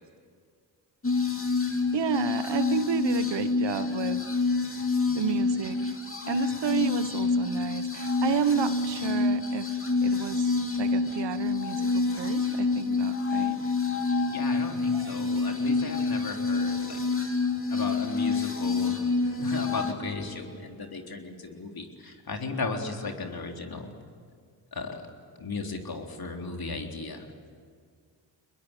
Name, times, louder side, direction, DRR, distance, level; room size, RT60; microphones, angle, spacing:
sound 1, 1.0-19.9, left 4 dB, 25° left, 3.1 m, -27 dB
voice 1, 1.9-4.2 5.1-5.9 6.3-13.6 14.9-16.0, right 8 dB, 60° right, 14 dB, 1.2 m, -32 dB
voice 2, 14.3-17.0 17.7-23.9 24.7-25.1 25.4-27.3, left 3 dB, 45° left, 3 dB, 3.7 m, -36 dB
24.0 x 21.5 x 9.0 m, 2.1 s
supercardioid pair, 45°, 49 cm